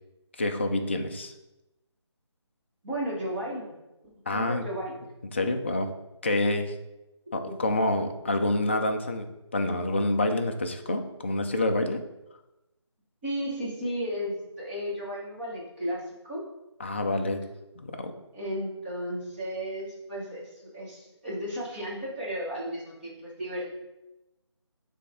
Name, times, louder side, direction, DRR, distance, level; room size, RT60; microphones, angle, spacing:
voice 1, 0.4-1.3 4.3-4.6 5.3-5.9 6.2-6.7 7.3-9.3 9.5-12.0 16.8-17.4 17.8-18.1, left 2 dB, 25° left, 5 dB, 0.4 m, -27 dB
voice 2, 2.8-3.7 4.0-4.9 7.5-7.6 13.2-16.4 18.3-23.7, equal, 20° right, -7 dB, 1.3 m, -34 dB
9.5 x 3.3 x 3.6 m, 0.96 s
figure-of-eight pair, 165°, 15 cm